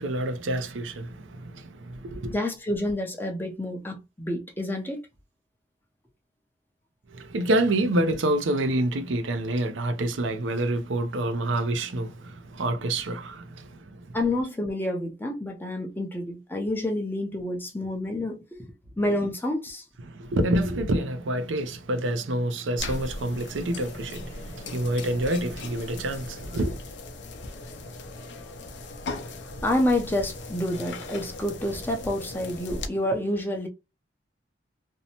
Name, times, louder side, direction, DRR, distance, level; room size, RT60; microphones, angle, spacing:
voice 1, 0.0-2.3 7.1-14.1 20.1-26.8, right 1 dB, 85° right, 0.5 m, -27 dB
voice 2, 2.3-5.0 14.1-18.6 19.0-19.8 29.6-33.7, left 1 dB, 10° left, 0.6 m, -28 dB
sound 1, 22.8-32.9, left 2 dB, 65° left, 0.5 m, -38 dB
2.6 x 2.1 x 2.8 m
head